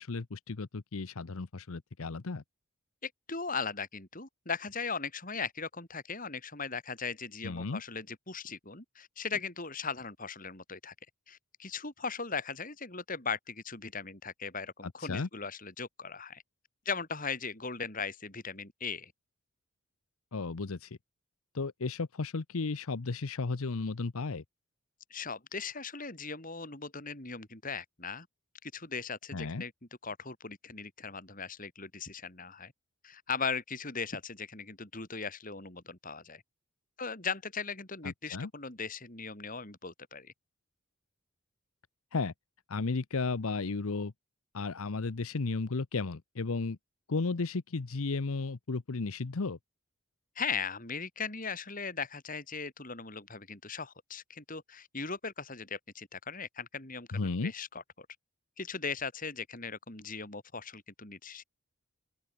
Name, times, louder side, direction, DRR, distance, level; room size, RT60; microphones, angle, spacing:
voice 1, 0.0-2.4 7.4-7.8 14.8-15.3 20.3-21.0 21.5-24.4 29.3-29.6 38.0-38.5 42.1-42.3 42.7-44.1 44.5-46.8 47.1-49.6 57.1-57.5, left 3 dB, 70° left, 0.8 m, -34 dB
voice 2, 3.0-10.9 11.3-16.4 16.9-19.1 25.1-28.3 28.6-29.7 30.0-32.7 33.0-36.4 37.0-40.3 50.4-58.1 58.6-61.4, left 5 dB, 40° left, 3.6 m, -38 dB
open air
head